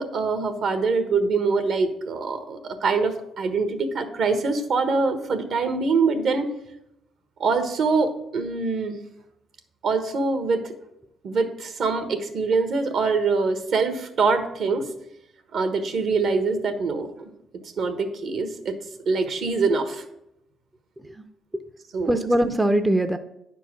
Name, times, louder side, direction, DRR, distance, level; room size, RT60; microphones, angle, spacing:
voice 1, 0.0-6.5 7.4-9.0 9.8-10.7 11.2-14.9 15.5-17.3 17.6-18.8 19.1-20.0 21.9-22.2, right 4 dB, 65° right, 8 dB, 1.3 m, -24 dB
voice 2, 22.1-23.2, right 1 dB, 15° right, 8 dB, 0.5 m, -22 dB
9.5 x 4.6 x 6.1 m, 0.81 s
cardioid pair, 90°, 0 cm